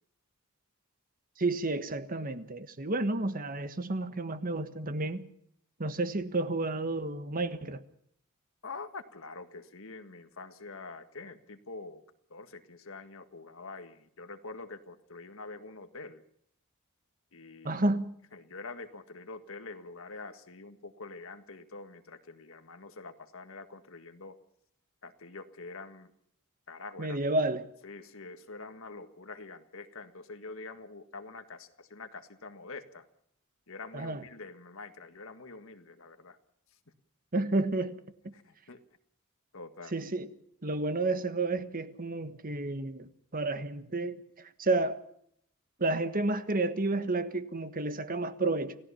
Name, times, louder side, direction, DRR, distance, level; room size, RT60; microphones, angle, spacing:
voice 1, 1.4-5.3 5.8-7.8 17.6-18.1 27.0-27.7 33.9-34.2 37.3-38.0 39.9-40.3 40.6-44.2 44.6-45.0 45.8-48.8, right 2 dB, 40° right, 1.4 m, -31 dB
voice 2, 8.6-12.0 12.3-16.2 17.3-17.8 18.3-24.4 25.0-26.1 26.7-27.2 27.8-33.1 33.7-36.4 38.3-38.8 39.5-39.9, left 3 dB, 65° left, 1.8 m, -45 dB
29.0 x 16.5 x 5.7 m
head